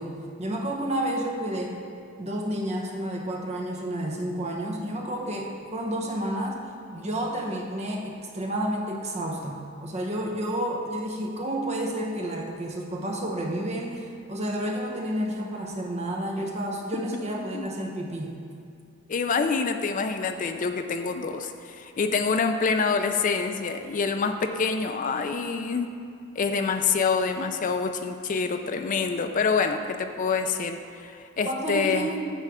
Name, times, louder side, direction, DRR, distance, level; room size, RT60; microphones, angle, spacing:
voice 1, 0.0-1.8 2.2-6.6 6.9-18.3 31.4-32.3, right 1 dB, 30° right, 0 dB, 0.8 m, -30 dB
voice 2, 19.1-25.9 26.4-32.1, left 5 dB, 35° left, 6 dB, 0.3 m, -26 dB
9.1 x 3.3 x 6.2 m, 2.5 s
head